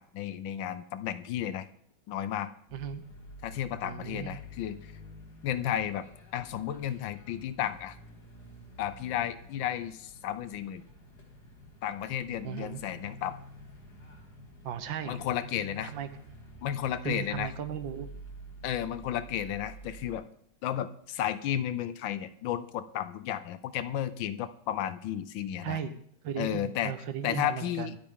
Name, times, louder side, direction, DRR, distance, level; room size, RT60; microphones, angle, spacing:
voice 1, 0.0-1.7 2.1-2.5 3.4-4.9 5.4-6.1 6.3-8.0 8.8-10.8 11.8-13.4 15.1-15.9 16.6-17.5 18.6-20.3 20.6-25.8 26.4-26.9 27.2-28.0, left 10 dB, 75° left, 13 dB, 1.3 m, -33 dB
sound 1, 2.7-20.1, left 1 dB, 50° left, 2.9 m, -49 dB
voice 2, 2.7-3.0 3.8-4.4 12.4-12.8 14.6-15.2 15.9-16.1 17.0-18.1 25.6-28.0, right 8 dB, 70° right, 11 dB, 1.6 m, -36 dB
23.0 x 8.9 x 3.7 m, 0.66 s
omnidirectional pair, 2.2 m